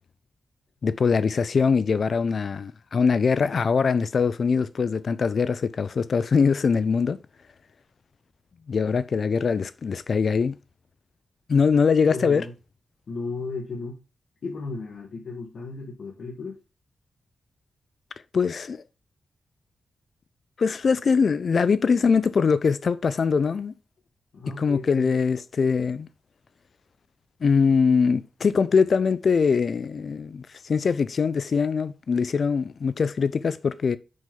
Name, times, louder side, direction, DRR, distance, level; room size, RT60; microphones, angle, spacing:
voice 1, 0.8-7.2 8.7-10.6 11.5-12.5 18.3-18.8 20.6-23.7 24.6-26.1 27.4-34.0, left 5 dB, 45° left, 0.3 m, -22 dB
voice 2, 12.1-12.5 13.1-14.0 14.4-16.6 24.3-25.1, left 3 dB, 65° left, 1.8 m, -34 dB
6.2 x 5.8 x 3.6 m
wide cardioid pair, 175°, 0 cm